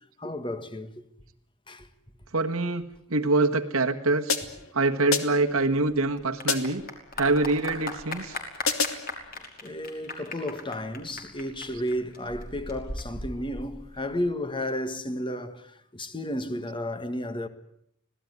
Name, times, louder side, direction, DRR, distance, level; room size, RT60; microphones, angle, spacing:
voice 1, 0.2-1.0 1.7-1.9 9.6-17.5, left 1 dB, 25° left, 1.8 m, -33 dB
voice 2, 2.3-4.4 4.7-6.8 7.2-8.4, right 2 dB, 80° right, 1.7 m, -25 dB
sound 1, 4.3-4.7 5.1-5.5 6.5-6.9 8.7-9.1, left 5 dB, 70° left, 2.4 m, -28 dB
Clapping / Applause, 5.3-14.3, left 2 dB, 45° left, 5.4 m, -39 dB
25.5 x 17.5 x 9.6 m
head